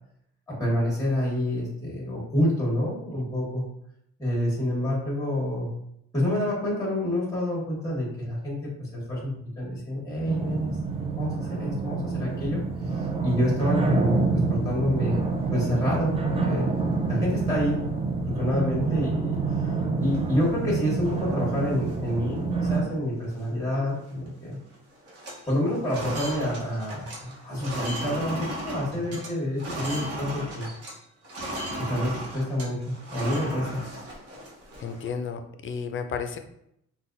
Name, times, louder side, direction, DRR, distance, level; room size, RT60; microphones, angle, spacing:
voice 1, 0.5-3.6 4.2-5.7 6.1-10.7 11.2-16.7 17.1-17.9 18.3-19.4 19.9-24.6 25.5-30.7 31.8-33.8, left 1 dB, 10° left, -4 dB, 1.3 m, -28 dB
sound 1, 10.3-22.8, right 4 dB, 20° right, 0.5 m, -27 dB
sound 2, 20.0-21.1 21.6-21.7 21.9-22.3 22.7-22.9 23.2-24.3 24.5-24.8 25.0-31.0 31.2-35.1, equal, 50° right, 1.0 m, -36 dB
voice 2, 28.9-29.2 34.8-36.4, left 6 dB, 45° left, 7 dB, 0.4 m, -33 dB
3.8 x 2.3 x 2.5 m, 0.75 s
cardioid pair, 90°, 30 cm